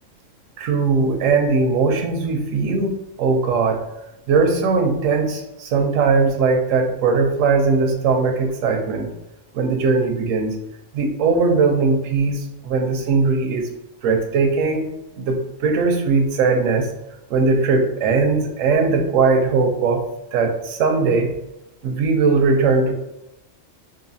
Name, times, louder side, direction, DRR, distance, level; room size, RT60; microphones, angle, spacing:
voice 1, 0.6-3.8 4.3-9.1 9.5-10.6 10.9-13.7 14.0-14.9 15.2-16.9 17.3-20.0 20.3-21.3 21.8-22.9, right 4 dB, 85° right, 4 dB, 1.0 m, -19 dB
3.9 x 2.4 x 2.6 m, 0.91 s
omnidirectional pair, 1.3 m